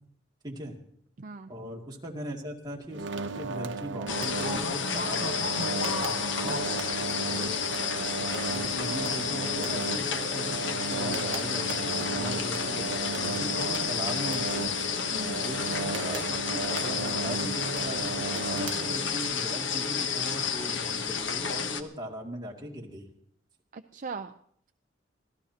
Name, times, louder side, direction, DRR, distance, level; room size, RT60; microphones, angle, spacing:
voice 1, 0.4-0.8 1.5-3.1 3.3-5.9 7.3-7.6 8.5-14.7 15.4-23.1, equal, 25° right, -2 dB, 2.4 m, -39 dB
voice 2, 1.2-1.5 6.2-6.6 15.1-15.5 23.7-24.3, right 4 dB, 45° right, 8 dB, 0.5 m, -40 dB
sound 1, 2.9-19.4, right 3 dB, 80° right, 0.9 m, -35 dB
sound 2, 4.1-21.8, left 6 dB, 80° left, 1.1 m, -31 dB
25.0 x 17.5 x 2.9 m, 0.67 s
head